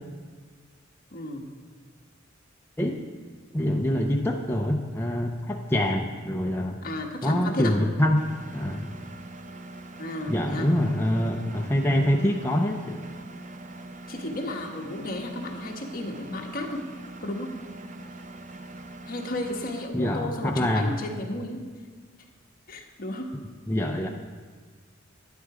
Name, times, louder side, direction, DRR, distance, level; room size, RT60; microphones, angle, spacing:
voice 1, 1.1-1.5 6.8-7.8 10.0-10.7 14.1-16.8 17.2-17.6 19.1-21.6 22.7-23.3, left 1 dB, 45° left, 1 dB, 1.4 m, -33 dB
voice 2, 3.5-6.8 7.2-8.2 8.5-8.9 10.3-13.0 19.9-20.9 23.7-24.1, left 1 dB, 10° left, 1 dB, 0.6 m, -25 dB
Engine, 8.2-19.9, right 2 dB, 40° right, 0.6 m, -43 dB
11.5 x 10.0 x 4.9 m, 1.5 s
head